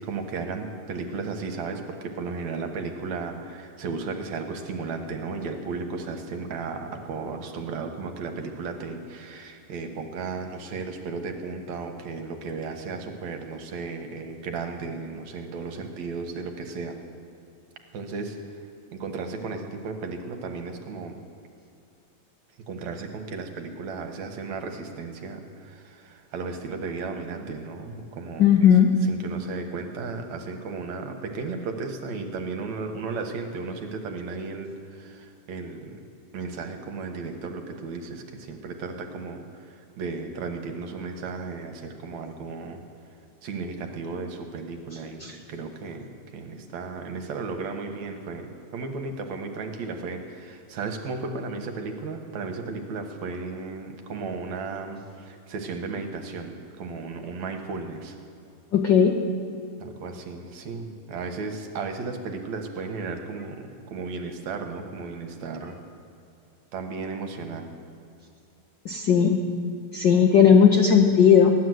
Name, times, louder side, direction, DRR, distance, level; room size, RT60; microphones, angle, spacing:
voice 1, 0.0-17.0 17.9-18.4 18.9-21.2 22.7-28.5 29.0-36.0 36.3-39.4 40.0-42.8 43.4-45.2 45.5-46.1 46.3-48.5 48.7-58.2 59.8-65.8 66.7-67.7, right 4 dB, 70° right, 4 dB, 2.5 m, -34 dB
voice 2, 28.4-28.9 45.2-45.3 58.7-59.2 68.8-69.4 69.9-71.5, left 7 dB, 70° left, 3 dB, 1.1 m, -17 dB
16.0 x 11.5 x 7.8 m, 2.7 s
omnidirectional pair, 3.4 m